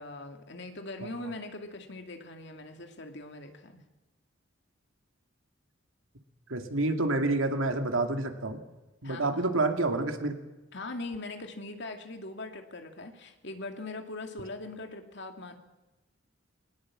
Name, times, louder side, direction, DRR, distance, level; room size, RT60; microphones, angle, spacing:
voice 1, 0.0-3.9 9.0-9.5 10.7-15.6, left 2 dB, 60° left, 5 dB, 2.4 m, -41 dB
voice 2, 6.5-8.6 9.0-10.4, right 2 dB, 85° right, 5 dB, 2.4 m, -28 dB
20.0 x 19.5 x 7.5 m, 1.1 s
head